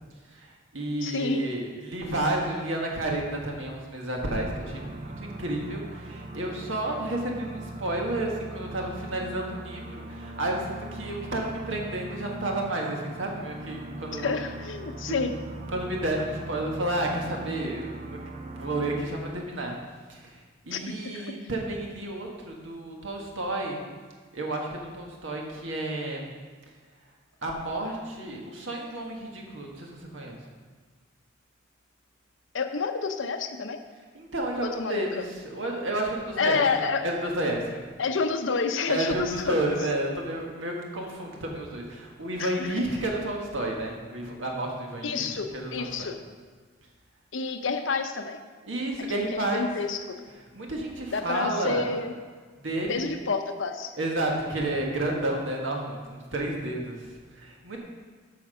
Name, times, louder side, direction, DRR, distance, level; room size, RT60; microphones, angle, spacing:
voice 1, 0.3-14.3 15.0-15.1 15.7-19.7 20.1-23.8 24.3-26.3 27.4-30.4 34.1-35.2 35.5-36.6 37.0-37.8 38.9-45.2 45.5-46.1 48.7-49.7 50.5-51.9 52.6-53.0 54.0-57.8, right 1 dB, 75° right, 0 dB, 1.6 m, -31 dB
voice 2, 1.0-1.4 14.1-15.3 20.7-21.4 32.5-33.8 34.6-35.2 36.4-37.0 38.0-39.6 42.4-42.7 45.0-46.2 47.3-48.4 49.3-50.2 51.1-52.1 52.9-54.0, left 4 dB, 70° left, 8 dB, 0.7 m, -29 dB
sound 1, 4.3-19.0, right 2 dB, 35° right, 0.6 m, -40 dB
8.5 x 5.9 x 5.6 m, 1.5 s
head